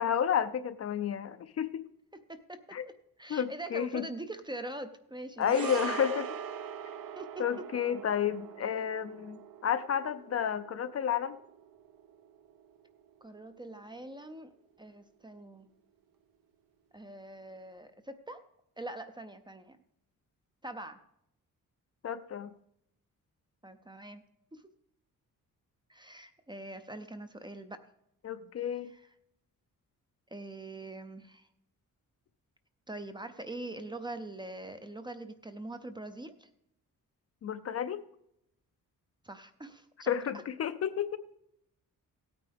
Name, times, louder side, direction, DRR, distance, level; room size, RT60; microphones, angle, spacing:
voice 1, 0.0-1.8 2.7-2.9 3.3-4.1 5.4-6.3 7.4-11.4 22.0-22.5 28.2-28.9 37.4-38.0 40.1-41.2, left 8 dB, 45° left, 12 dB, 0.5 m, -31 dB
voice 2, 2.3-2.9 3.2-6.0 7.2-7.4 13.2-14.5 14.8-15.7 16.9-18.4 18.8-19.8 20.6-21.0 23.6-24.2 24.5-24.6 25.9-27.8 28.9-29.0 30.3-31.5 32.9-36.5 39.2-40.2, right 2 dB, 15° right, 9 dB, 0.5 m, -43 dB
sound 1, 5.4-13.9 14.1-14.3, right 7 dB, 75° right, 0.9 m, -43 dB
17.0 x 9.1 x 3.4 m, 0.78 s
wide cardioid pair, 170°, 34 cm